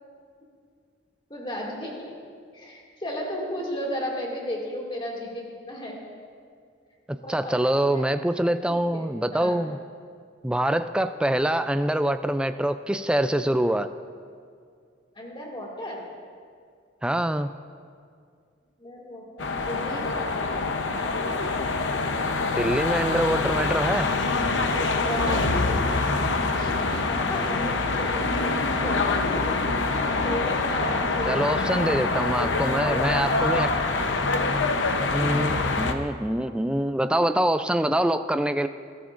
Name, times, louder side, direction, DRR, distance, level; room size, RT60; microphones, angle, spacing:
voice 1, 1.3-2.1 2.5-6.0 7.2-8.1 8.4-9.7 15.2-16.0 18.8-20.1 25.0-29.6 30.2-31.7 32.8-33.5, left 1 dB, 25° left, -2 dB, 2.3 m, -34 dB
voice 2, 7.3-9.8 10.4-13.9 17.0-17.5 22.6-24.1 31.3-33.7 35.1-38.7, right 1 dB, 5° right, 10 dB, 0.3 m, -25 dB
sound 1, 19.4-35.9, left 3 dB, 70° left, 0.8 m, -25 dB
21.0 x 13.0 x 2.6 m, 2.2 s
head